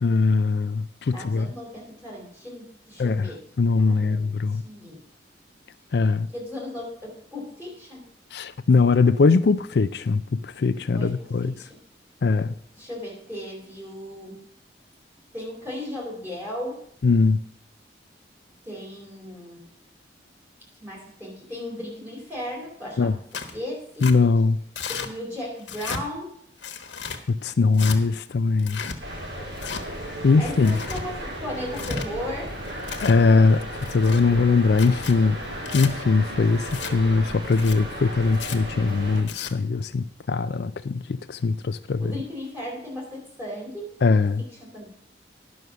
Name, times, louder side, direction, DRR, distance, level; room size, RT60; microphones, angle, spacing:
voice 1, 0.0-1.5 3.0-3.3 3.6-4.6 5.9-6.3 8.3-11.5 12.2-12.5 17.0-17.4 23.0-23.1 24.0-24.6 27.3-28.8 30.2-30.8 33.0-35.4 35.7-41.0 41.3-42.0 44.0-44.4, left 4 dB, 65° left, 13 dB, 0.4 m, -21 dB
voice 2, 1.1-3.4 3.7-5.0 6.3-8.0 11.0-11.8 12.7-14.4 15.3-16.8 18.6-19.6 20.8-23.1 23.5-24.1 24.9-26.3 30.4-32.5 42.0-43.9 44.5-44.9, left 1 dB, 10° right, -3 dB, 4.5 m, -36 dB
Tearing, 23.3-23.6 24.0-24.1 24.8-25.1 25.6-26.0 26.6-27.2 27.7-28.0 28.6-29.0 29.6-29.8 30.5-31.0 31.6-32.1 32.6-33.2 33.8-34.2 34.7-35.1 35.6-35.9 36.6-36.9 37.5-37.8 38.3-38.6 39.2-39.5, left 5 dB, 85° left, 1.3 m, -34 dB
sound 1, 29.0-39.2, equal, 85° right, 3.8 m, -35 dB
11.0 x 6.4 x 6.8 m, 0.68 s
head